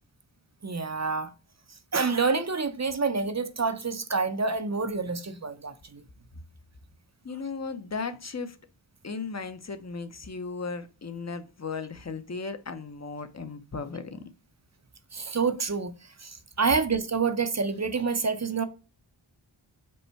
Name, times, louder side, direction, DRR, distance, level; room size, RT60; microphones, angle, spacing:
voice 1, 0.6-1.3 1.9-6.0 15.1-15.9 16.2-18.7, right 4 dB, 35° right, 0.5 m, -27 dB
voice 2, 7.2-8.6 9.0-14.2, left 4 dB, 35° left, 0.6 m, -36 dB
5.3 x 2.2 x 4.4 m
wide cardioid pair, 40°, 50 cm